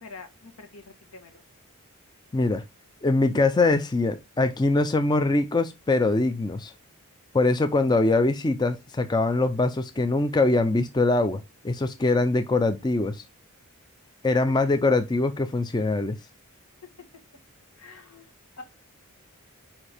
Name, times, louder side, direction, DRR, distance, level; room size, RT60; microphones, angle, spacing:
voice 1, 0.0-1.4 17.8-18.3 18.6-18.7, left 3 dB, 80° left, 1.4 m, -45 dB
voice 2, 2.3-2.6 3.0-6.7 7.3-13.2 14.2-16.2, left 2 dB, 20° left, 0.4 m, -23 dB
4.9 x 4.4 x 4.9 m
head